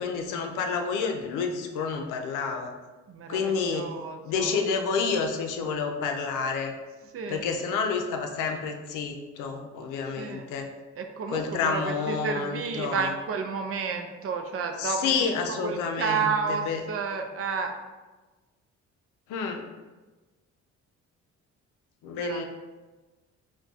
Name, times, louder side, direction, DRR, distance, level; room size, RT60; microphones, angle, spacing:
voice 1, 0.0-2.7 3.3-3.9 4.2-6.7 7.3-10.7 11.3-13.1 14.8-16.8 19.3-19.6 22.0-22.4, left 5 dB, 90° left, 4 dB, 0.5 m, -29 dB
voice 2, 3.1-4.6 7.1-7.4 10.2-10.5 11.0-17.7 22.2-22.4, right 5 dB, 50° right, 5 dB, 0.4 m, -31 dB
2.3 x 2.2 x 3.9 m, 1.2 s
cardioid pair, 90°, 30 cm